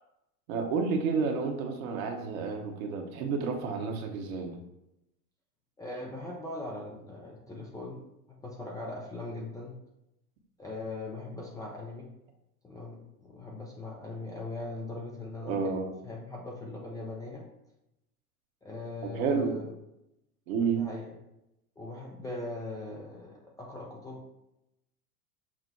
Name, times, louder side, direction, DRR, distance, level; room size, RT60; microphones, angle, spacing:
voice 1, 0.5-4.6 15.4-15.8 19.0-19.6 20.5-20.9, right 5 dB, 60° right, 4 dB, 1.0 m, -30 dB
voice 2, 5.8-8.0 8.3-9.7 10.6-12.1 12.6-15.7 16.0-17.4 18.6-19.7 20.7-21.2 21.8-24.2, left 2 dB, 10° left, -3 dB, 0.4 m, -40 dB
6.1 x 2.1 x 4.1 m, 0.87 s
hypercardioid pair, 95°, 47 cm